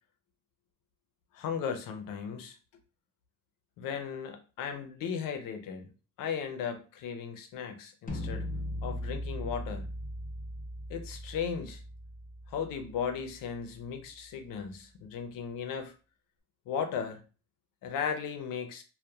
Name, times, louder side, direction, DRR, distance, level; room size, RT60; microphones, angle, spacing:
voice 1, 1.3-2.6 3.8-5.9 6.2-8.5 8.8-9.9 10.9-11.8 12.5-15.9 16.7-17.2 17.8-18.8, left 7 dB, 75° left, 0.6 m, -36 dB
sound 1, 8.1-14.0, equal, 25° left, 0.5 m, -39 dB
2.7 x 2.2 x 2.3 m
cardioid pair, 130°, 33 cm